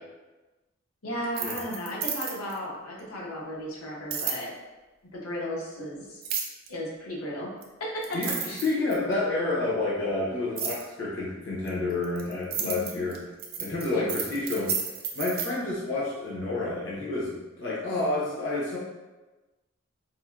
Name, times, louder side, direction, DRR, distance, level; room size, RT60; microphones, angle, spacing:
voice 1, 1.0-4.5 5.1-6.2 6.7-7.5 7.8-8.6 12.6-13.0 13.9-14.1, equal, 90° left, -4 dB, 0.8 m, -35 dB
sound 1, 1.2-2.6 4.1-4.4 6.2-6.7 7.6-7.7 8.0-9.1 10.6-10.8 11.7-15.5, right 7 dB, 45° right, 0.3 m, -32 dB
voice 2, 8.1-13.2 13.6-14.7 15.1-18.8, left 2 dB, 60° left, -6 dB, 0.7 m, -29 dB
4.2 x 2.1 x 2.4 m, 1.2 s
head